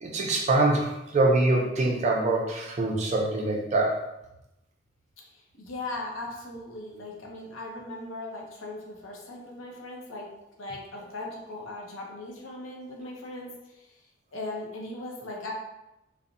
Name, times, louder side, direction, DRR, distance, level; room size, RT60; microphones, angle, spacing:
voice 1, 0.0-4.0, right 2 dB, 35° right, -1 dB, 0.4 m, -24 dB
voice 2, 5.3-10.3 10.6-14.0 14.3-15.5, left 2 dB, 75° left, -1 dB, 0.6 m, -38 dB
2.7 x 2.0 x 2.5 m, 0.92 s
head